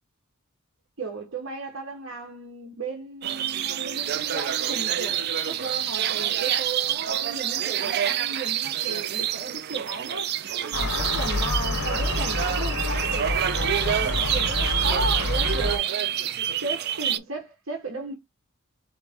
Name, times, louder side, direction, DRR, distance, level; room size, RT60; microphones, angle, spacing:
voice 1, 1.0-10.3 10.6-13.3 13.6-15.9 16.6-18.1, right 3 dB, 70° right, 1.0 m, -35 dB
sound 1, 3.2-17.2, right 10 dB, 50° right, 0.3 m, -27 dB
Gull seagull, 10.7-15.8, left 2 dB, 80° left, 0.7 m, -28 dB
3.9 x 3.1 x 3.4 m
head